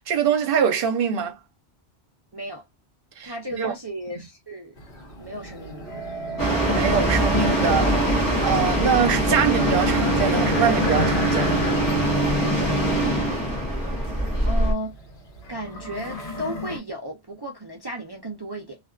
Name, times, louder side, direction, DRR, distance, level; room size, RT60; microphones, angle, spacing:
voice 1, 0.0-1.4 3.2-3.3 3.6-3.7 6.7-7.9 8.4-11.6, right 7 dB, 60° right, 0.9 m, -23 dB
voice 2, 2.3-2.6 3.2-4.7 5.2-5.9 14.5-15.0 15.5-18.8, equal, 30° right, 0.5 m, -34 dB
sound 1, 4.8-16.8, left 1 dB, 60° left, 1.0 m, -32 dB
sound 2, 6.4-14.7, right 1 dB, 20° left, 1.0 m, -22 dB
2.4 x 2.3 x 2.3 m
omnidirectional pair, 1.1 m